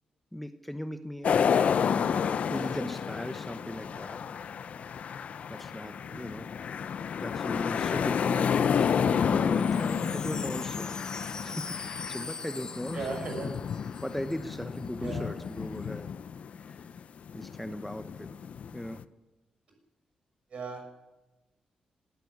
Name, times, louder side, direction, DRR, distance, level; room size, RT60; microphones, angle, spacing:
voice 1, 0.3-1.6 2.5-4.2 5.5-6.5 7.2-10.9 11.4-13.6 13.8-16.1 16.7-16.9 17.3-18.3 18.7-19.0, left 1 dB, 5° left, 9 dB, 0.9 m, -38 dB
sound 1, 1.2-17.0 17.3-19.0, left 7 dB, 65° left, 0.7 m, -30 dB
Wind chime, 9.3-14.5 14.7-14.8 15.1-15.5, left 4 dB, 30° left, 1.2 m, -42 dB
voice 2, 12.9-13.5 15.0-15.3 20.5-21.0, right 4 dB, 60° right, 3 dB, 6.6 m, -36 dB
19.0 x 14.0 x 9.6 m, 1.1 s
cardioid pair, 115°, 3 cm